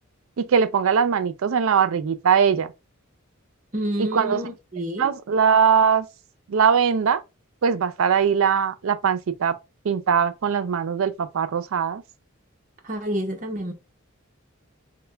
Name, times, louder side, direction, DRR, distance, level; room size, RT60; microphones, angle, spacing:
voice 1, 0.4-2.7 4.0-4.4 5.0-6.1 6.5-7.2 7.6-9.5 9.8-12.0, right 7 dB, 75° right, 0.4 m, -21 dB
voice 2, 3.7-5.1 12.8-13.7, right 1 dB, 40° right, 0.8 m, -29 dB
3.3 x 2.1 x 3.3 m
head